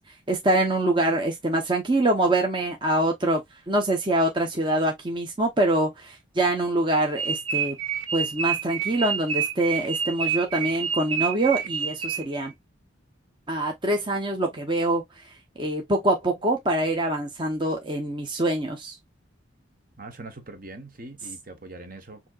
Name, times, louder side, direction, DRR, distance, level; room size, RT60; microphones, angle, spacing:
voice 1, 0.3-7.8 8.1-12.5 13.5-15.0 15.6-19.0, right 1 dB, 25° right, 0.8 m, -24 dB
sound 1, 7.2-12.5, right 7 dB, 85° right, 1.2 m, -28 dB
voice 2, 20.0-22.2, right 2 dB, 45° right, 1.1 m, -42 dB
7.1 x 2.9 x 2.4 m
head